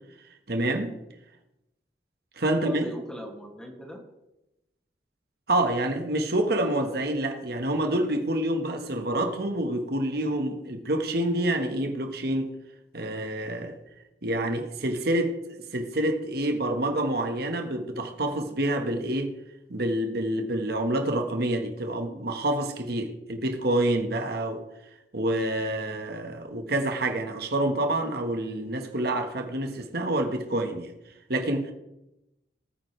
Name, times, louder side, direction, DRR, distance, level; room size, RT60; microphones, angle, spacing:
voice 1, 0.5-0.9 2.4-2.8 5.5-12.6 12.9-13.7 14.2-15.4 15.7-19.3 19.7-24.6 25.1-30.9 31.3-31.7, right 1 dB, 60° right, 1.5 m, -27 dB
voice 2, 2.5-4.0, equal, 5° left, 2.4 m, -40 dB
19.5 x 9.1 x 3.4 m
head